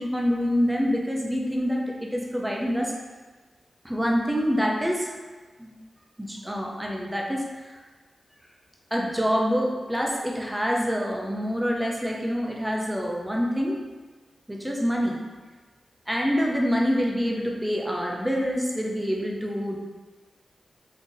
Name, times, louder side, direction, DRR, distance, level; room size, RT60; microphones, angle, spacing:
voice 1, 0.0-2.9 3.8-5.2 5.6-5.7 6.2-7.8 8.9-13.8 14.5-15.2 16.1-19.8, equal, 5° right, -1 dB, 0.4 m, -26 dB
3.7 x 2.6 x 2.5 m, 1.4 s
wide cardioid pair, 120°, 0 cm